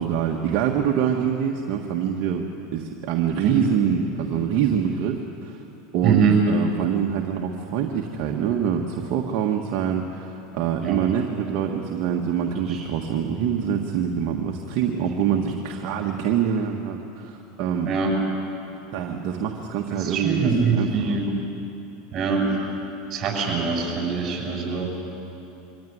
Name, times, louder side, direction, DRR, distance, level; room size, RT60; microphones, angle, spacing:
voice 1, 0.0-5.6 5.9-17.9 18.9-21.3, right 8 dB, 60° right, 1 dB, 1.6 m, -25 dB
voice 2, 6.0-6.4 10.8-11.0 12.7-12.8 15.2-15.4 17.8-18.1 20.0-21.2 22.1-22.6 23.1-24.9, right 5 dB, 35° right, 0 dB, 7.7 m, -23 dB
24.0 x 16.5 x 9.6 m, 3.0 s
supercardioid pair, 115°, 0 cm